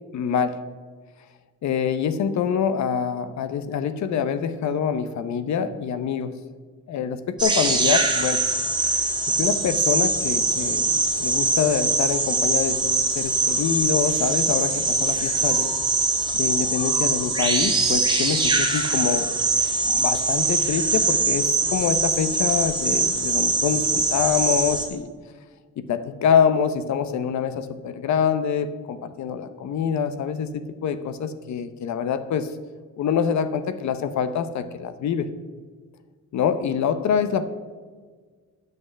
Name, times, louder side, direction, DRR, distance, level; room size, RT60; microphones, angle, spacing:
voice 1, 0.1-0.6 1.6-6.3 6.9-8.4 9.3-15.7 16.3-19.4 19.8-25.1 25.9-32.5 33.0-35.3 36.3-37.5, left 7 dB, 65° left, 11 dB, 0.9 m, -25 dB
sound 1, 7.4-24.9, right 3 dB, 15° right, 1.9 m, -22 dB
9.3 x 5.7 x 7.4 m, 1.5 s
cardioid pair, 90°, 30 cm